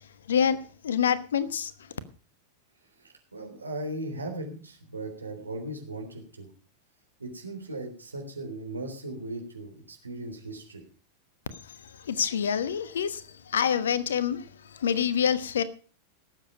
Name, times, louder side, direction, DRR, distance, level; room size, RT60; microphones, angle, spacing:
voice 1, 0.3-0.6 0.8-1.7 12.0-15.6, left 8 dB, 65° left, 1.1 m, -26 dB
voice 2, 3.0-6.5 7.2-10.8, right 1 dB, 80° right, 3.6 m, -38 dB
18.0 x 7.6 x 5.3 m
figure-of-eight pair, 90°, 0 cm